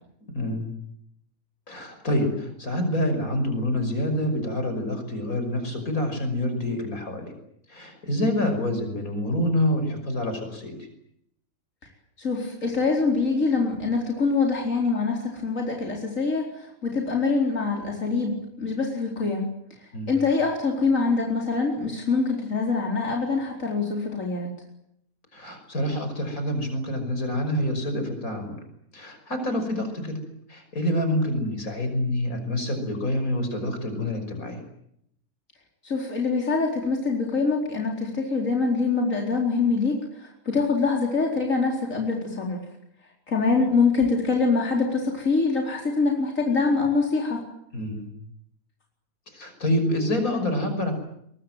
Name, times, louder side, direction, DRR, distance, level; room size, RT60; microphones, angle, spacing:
voice 1, 0.3-0.7 1.7-7.3 7.7-10.8 19.9-20.1 25.3-28.6 28.9-30.2 30.5-34.6 47.7-48.1 49.3-50.9, left 1 dB, 85° left, 7 dB, 6.2 m, -27 dB
voice 2, 12.2-19.5 20.1-24.5 35.8-42.6 43.3-47.4, left 4 dB, 65° left, 0 dB, 4.8 m, -24 dB
23.0 x 22.5 x 9.4 m, 0.74 s
omnidirectional pair, 1.5 m